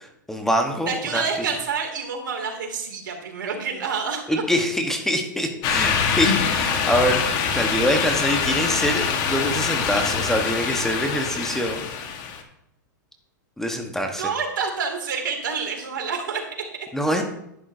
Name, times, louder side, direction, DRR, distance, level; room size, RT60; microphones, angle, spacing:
voice 1, 0.3-1.5 4.3-11.8 13.6-14.3 16.9-17.2, equal, 5° left, 4 dB, 1.2 m, -24 dB
voice 2, 0.9-4.4 14.2-16.4 16.7-16.9, right 5 dB, 80° right, 2 dB, 2.6 m, -28 dB
sound 1, 5.6-12.4, left 6 dB, 45° left, 1.5 m, -24 dB
10.5 x 10.5 x 2.7 m, 0.80 s
hypercardioid pair, 115°, 10 cm